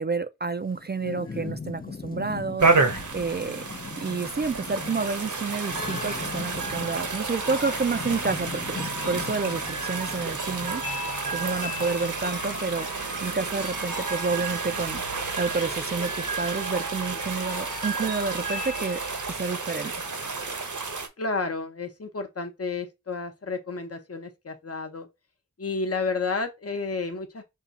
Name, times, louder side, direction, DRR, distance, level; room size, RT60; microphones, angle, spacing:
voice 1, 0.0-3.6 4.0-10.8 11.3-15.0 15.4-19.0 19.3-19.9, right 4 dB, 35° right, 0.4 m, -29 dB
Thunderstorm / Rain, 0.6-12.9, left 5 dB, 30° left, 0.4 m, -41 dB
voice 2, 1.0-1.5 21.2-25.1 25.6-27.4, left 4 dB, 50° left, 0.9 m, -31 dB
sound 1, 2.6-21.1, right 4 dB, 70° right, 0.9 m, -31 dB
sound 2, 5.7-19.3, right 2 dB, 85° right, 1.5 m, -37 dB
5.5 x 2.4 x 4.0 m
wide cardioid pair, 45°, 31 cm